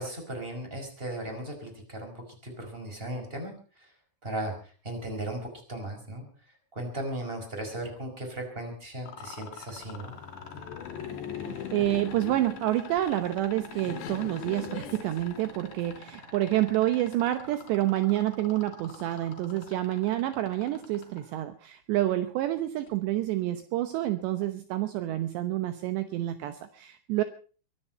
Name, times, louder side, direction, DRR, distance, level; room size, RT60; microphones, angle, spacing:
voice 1, 0.0-3.9 4.2-4.5 4.8-6.3 6.7-10.1, right 1 dB, 10° right, 5 dB, 4.9 m, -37 dB
sound 1, 9.1-21.2 22.9-23.0, left 6 dB, 45° left, 4.3 m, -45 dB
Laughter, 9.7-16.0, left 9 dB, 75° left, 3.2 m, -41 dB
voice 2, 11.7-27.2, right 14 dB, 75° right, 10 dB, 3.0 m, -28 dB
23.0 x 11.5 x 5.4 m, 0.40 s
omnidirectional pair, 5.4 m